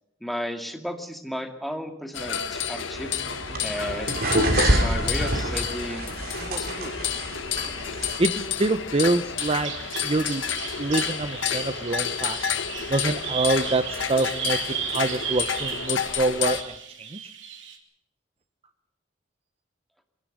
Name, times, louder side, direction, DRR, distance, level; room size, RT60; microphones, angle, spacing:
voice 1, 0.2-3.2 3.6-4.2 4.5-6.1 6.4-7.0, equal, ahead, 4 dB, 2.3 m, -34 dB
sound 1, 2.1-16.6, left 8 dB, 90° left, 1.5 m, -30 dB
sound 2, 2.9-8.2, right 1 dB, 55° right, 3.1 m, -27 dB
voice 2, 8.2-9.7 10.0-10.5 10.8-12.4 12.9-14.6 14.9-16.7 17.0-17.2, right 2 dB, 30° right, 10 dB, 0.8 m, -25 dB
Bird vocalization bird call bird song, 9.4-17.8, right 7 dB, 70° right, 3.0 m, -35 dB
23.5 x 17.5 x 6.6 m, 0.78 s
head